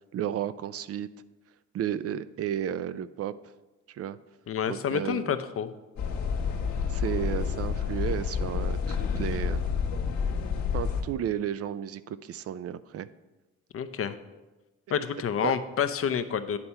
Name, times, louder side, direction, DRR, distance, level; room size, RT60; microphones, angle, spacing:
voice 1, 0.1-1.1 1.7-3.3 3.9-4.2 4.7-5.3 6.9-9.6 10.7-13.1 15.4-15.5, right 10 dB, 55° right, 15 dB, 0.4 m, -33 dB
voice 2, 4.5-5.7 13.7-14.1 14.9-16.6, left 7 dB, 50° left, 11 dB, 0.6 m, -28 dB
sound 1, 6.0-11.0, left 6 dB, 65° left, 1.2 m, -29 dB
9.9 x 4.2 x 5.6 m, 1.1 s
cardioid pair, 90°, 30 cm